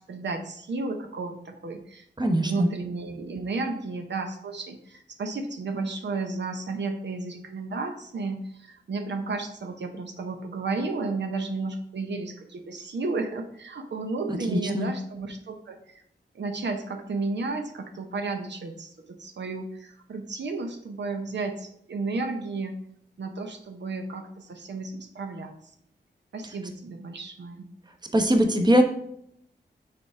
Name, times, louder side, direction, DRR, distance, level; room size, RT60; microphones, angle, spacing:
voice 1, 0.0-2.0 2.4-16.0 16.3-22.8 23.2-25.5 26.3-27.7, right 3 dB, 75° right, 5 dB, 0.8 m, -33 dB
voice 2, 2.2-2.7 14.5-14.9 28.1-28.8, equal, 25° right, 4 dB, 0.9 m, -21 dB
6.7 x 3.5 x 4.7 m, 0.71 s
cardioid pair, 65°, 18 cm